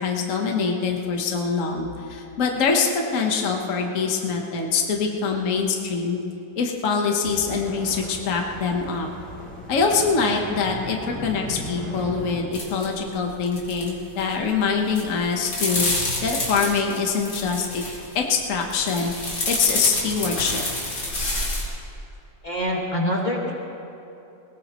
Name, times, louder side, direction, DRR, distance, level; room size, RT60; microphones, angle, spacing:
voice 1, 0.0-6.2 6.6-9.1 9.7-15.9 16.2-17.8 18.1-20.6, left 5 dB, 55° left, 1 dB, 1.4 m, -24 dB
sound 1, 7.2-12.5, left 1 dB, 5° left, 3.1 m, -37 dB
sound 2, 12.5-12.9 13.1-13.9 14.2-14.6 14.9-18.2 18.6-21.6, left 2 dB, 80° left, 3.8 m, -28 dB
voice 2, 22.4-23.5, equal, 30° left, -3 dB, 1.7 m, -25 dB
21.0 x 20.0 x 3.0 m, 2.8 s
omnidirectional pair, 1.8 m